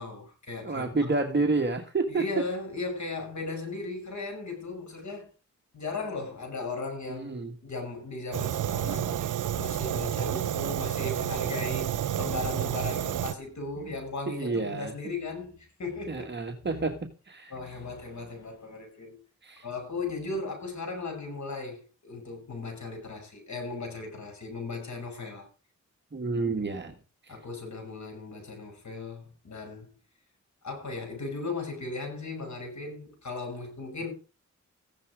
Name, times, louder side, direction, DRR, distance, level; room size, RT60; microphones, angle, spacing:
voice 1, 0.0-1.1 2.1-5.3 5.7-16.2 17.5-19.2 19.6-25.5 27.3-29.9 30.6-34.1, left 3 dB, 65° left, 7.8 m, -37 dB
voice 2, 0.6-2.4 7.1-7.5 13.8-13.9 14.3-14.9 16.1-17.5 19.4-19.7 26.1-26.9 27.2-27.3, right 3 dB, 35° right, 1.9 m, -29 dB
Fire, 8.3-13.3, right 11 dB, 90° right, 0.6 m, -30 dB
15.5 x 11.5 x 5.0 m
wide cardioid pair, 105°, 30 cm